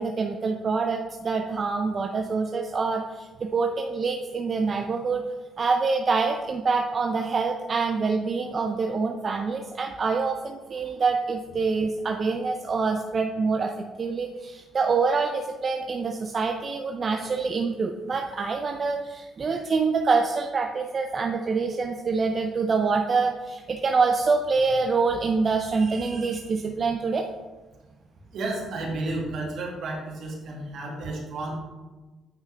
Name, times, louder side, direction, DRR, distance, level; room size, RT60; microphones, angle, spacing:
voice 1, 0.0-5.2 5.6-13.7 14.0-27.3, right 4 dB, 40° right, 4 dB, 0.5 m, -26 dB
voice 2, 28.3-31.6, right 2 dB, 70° right, -1 dB, 2.1 m, -32 dB
8.9 x 5.7 x 3.4 m, 1.2 s
cardioid pair, 90°, 0 cm